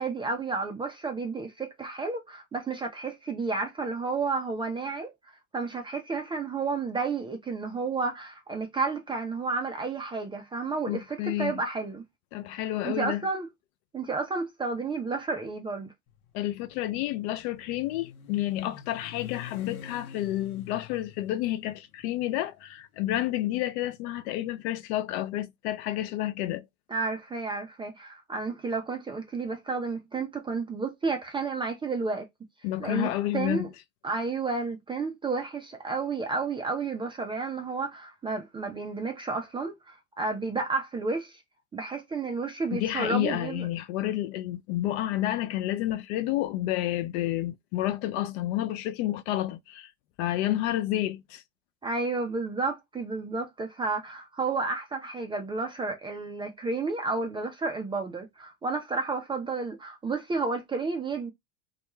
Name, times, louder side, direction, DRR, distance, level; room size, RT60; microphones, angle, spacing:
voice 1, 0.0-5.1 5.5-12.0 12.6-13.5 13.9-15.9 26.9-32.3 32.8-33.7 34.0-41.4 41.7-43.7 51.8-61.3, right 4 dB, 10° right, 0.4 m, -31 dB
voice 2, 10.9-11.5 12.3-13.2 16.3-26.7 32.6-33.7 42.7-49.9 50.2-51.4, left 14 dB, 50° left, 0.4 m, -30 dB
Motorcycle, 16.1-24.3, left 10 dB, 75° left, 0.8 m, -48 dB
2.3 x 2.1 x 3.0 m
hypercardioid pair, 85°, 44 cm